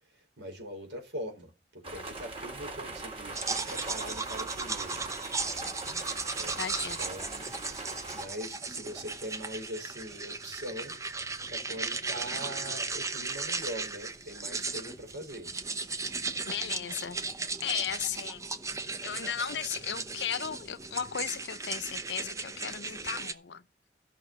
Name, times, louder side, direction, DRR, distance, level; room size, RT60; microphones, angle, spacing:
voice 1, 0.4-5.0 6.3-7.5 8.1-11.0 11.5-15.5, equal, 80° right, 4.5 m, -42 dB
sound 1, 1.8-8.2, right 3 dB, 35° right, 3.3 m, -41 dB
sound 2, 3.3-23.3, right 3 dB, 20° right, 0.8 m, -36 dB
voice 2, 5.6-6.0 6.6-7.0 16.5-17.2 17.6-18.4 19.0-23.6, left 8 dB, 80° left, 0.7 m, -36 dB
13.5 x 6.4 x 5.3 m
head